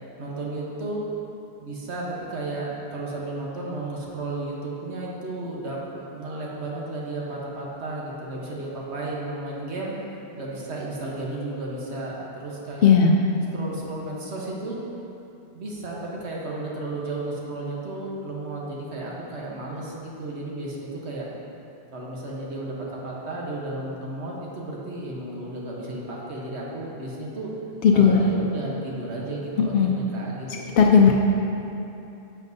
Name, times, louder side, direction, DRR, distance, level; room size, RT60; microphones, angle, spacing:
voice 1, 0.2-1.0 1.6-9.9 10.3-12.9 13.5-14.8 15.5-21.3 21.9-27.5 27.9-30.7, right 2 dB, 85° right, -4 dB, 1.4 m, -33 dB
voice 2, 12.8-13.2 27.8-28.2 29.7-29.9 30.8-31.1, left 6 dB, 65° left, 0 dB, 0.7 m, -15 dB
10.5 x 7.3 x 2.7 m, 2.9 s
omnidirectional pair, 1.1 m